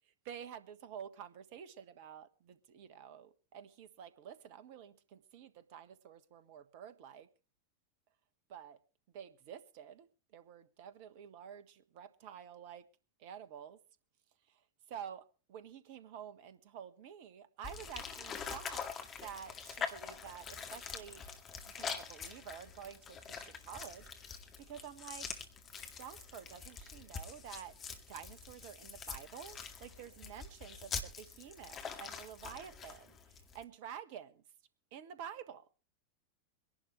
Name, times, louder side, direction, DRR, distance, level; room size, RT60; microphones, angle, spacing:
voice 1, 0.2-7.3 8.5-8.8 9.1-10.1 10.3-12.8 13.2-13.8 14.5-14.6 14.9-21.2 21.7-25.3 25.9-27.8 28.1-34.4 34.9-35.6, right 8 dB, 50° right, 1.3 m, -50 dB
sound 1, 17.6-33.6, left 6 dB, 25° left, 1.9 m, -45 dB
24.0 x 11.5 x 3.2 m
figure-of-eight pair, 90°, 0 cm